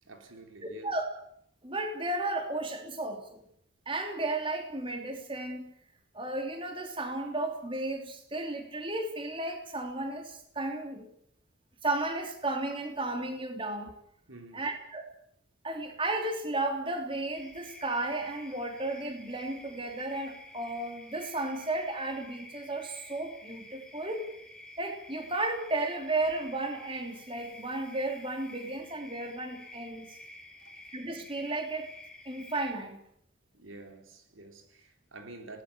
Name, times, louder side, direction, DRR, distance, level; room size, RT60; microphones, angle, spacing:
voice 1, 0.0-1.0 14.3-14.7 30.6-30.7 33.5-35.6, right 2 dB, 90° right, 3.8 m, -49 dB
voice 2, 1.6-3.4 3.9-5.7 6.1-11.1 11.8-13.9 14.5-15.0 15.6-24.3 24.8-30.1 30.9-31.9 32.2-33.0, right 2 dB, 25° right, 3.2 m, -34 dB
sound 1, 17.3-32.7, left 1 dB, 5° left, 3.4 m, -51 dB
21.0 x 18.5 x 8.7 m
head